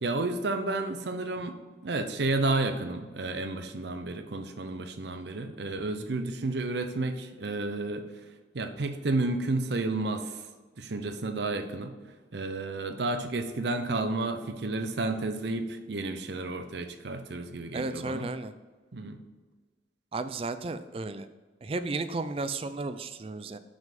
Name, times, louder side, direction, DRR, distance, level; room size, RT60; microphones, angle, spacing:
voice 1, 0.0-1.6 1.8-8.1 8.5-10.4 10.8-12.0 12.3-18.3 18.9-19.2, right 2 dB, 65° right, 8 dB, 0.7 m, -31 dB
voice 2, 17.7-18.5 20.1-21.3 21.6-23.6, right 3 dB, 30° right, 11 dB, 0.4 m, -33 dB
6.3 x 5.5 x 5.1 m, 1.4 s
head